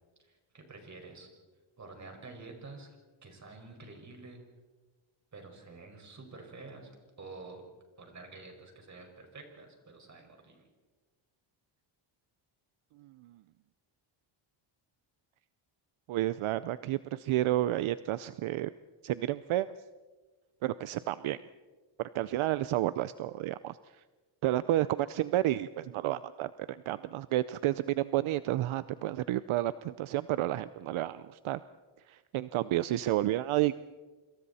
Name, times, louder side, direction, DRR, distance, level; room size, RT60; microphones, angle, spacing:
voice 1, 0.2-1.3 1.8-3.0 3.2-4.4 5.3-6.9 7.2-7.7 8.0-10.7, right 3 dB, 35° right, 3 dB, 5.5 m, -49 dB
voice 2, 13.0-13.4 16.1-18.7 19.0-19.7 20.6-21.4 22.0-24.0 24.4-31.6 32.1-33.8, right 14 dB, 75° right, 15 dB, 0.7 m, -31 dB
28.0 x 26.5 x 4.2 m, 1.3 s
cardioid pair, 130°, 50 cm